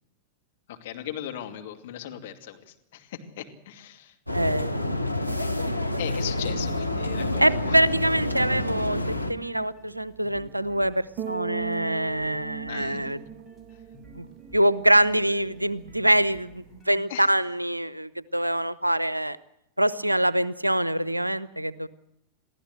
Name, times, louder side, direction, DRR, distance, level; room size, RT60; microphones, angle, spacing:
voice 1, 0.7-4.1 6.0-7.8 12.6-13.3 17.1-17.3, left 11 dB, 55° left, 4 dB, 2.6 m, -38 dB
sound 1, 4.3-9.3, left 1 dB, 90° left, 1.1 m, -28 dB
sound 2, 4.3-16.8, right 9 dB, 40° right, 1.0 m, -43 dB
voice 2, 4.3-4.9 7.4-9.0 9.3-13.2 14.1-14.3 14.5-19.4 19.8-21.9, right 1 dB, 85° right, 19 dB, 0.7 m, -24 dB
sound 3, 8.1-17.5, right 1 dB, 5° right, 6.9 m, -52 dB
23.5 x 15.0 x 7.9 m, 0.84 s
figure-of-eight pair, 90°, 0 cm